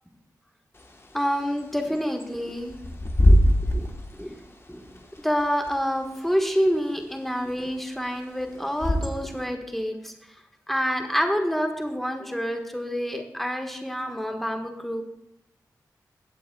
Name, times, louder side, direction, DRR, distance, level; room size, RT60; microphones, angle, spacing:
Bird / Wind, 0.7-9.4, left 1 dB, 35° left, 1.2 m, -25 dB
voice 1, 1.1-2.8 3.2-3.4 3.7-3.9 4.1-4.4 4.7-4.8 5.2-10.1 10.7-15.0, equal, 5° left, 4 dB, 1.5 m, -27 dB
15.5 x 8.5 x 2.3 m, 0.80 s
cardioid pair, 45°, 7 cm